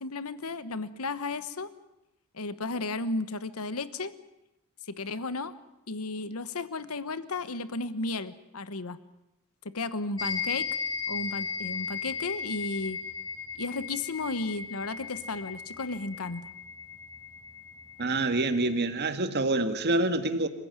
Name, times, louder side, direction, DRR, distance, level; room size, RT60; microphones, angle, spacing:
voice 1, 0.0-1.7 2.3-4.1 4.9-5.5 5.9-9.0 9.7-10.7 11.1-13.0 13.6-16.5, left 3 dB, 85° left, 14 dB, 1.1 m, -34 dB
sound 1, 10.2-18.9, left 6 dB, 20° left, 4.6 m, -36 dB
voice 2, 18.0-20.5, right 2 dB, 50° right, 8 dB, 1.8 m, -26 dB
27.5 x 16.0 x 9.6 m, 0.88 s
head